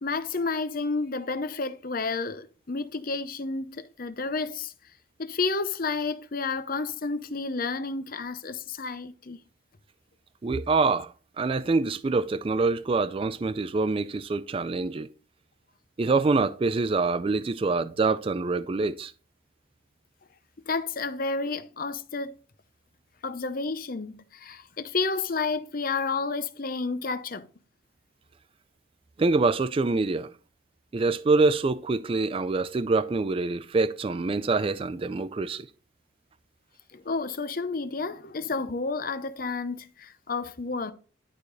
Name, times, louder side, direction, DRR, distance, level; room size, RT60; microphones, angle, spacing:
voice 1, 0.0-4.7 5.2-9.4 20.7-22.3 23.2-27.5 36.9-40.9, left 4 dB, 45° left, 0.7 m, -31 dB
voice 2, 10.4-15.1 16.0-19.1 29.2-30.3 30.9-35.7, right 3 dB, 25° right, 0.3 m, -25 dB
11.0 x 4.9 x 4.0 m
head